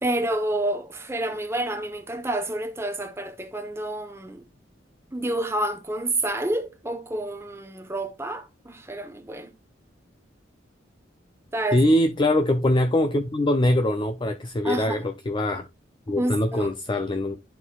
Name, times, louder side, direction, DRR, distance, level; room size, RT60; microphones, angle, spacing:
voice 1, 0.0-4.4 5.1-9.5 11.5-11.8 14.6-15.0 16.2-16.7, right 1 dB, 15° right, 0.9 m, -29 dB
voice 2, 11.7-15.7 16.1-17.5, left 1 dB, 25° left, 0.5 m, -23 dB
11.0 x 4.2 x 2.3 m
head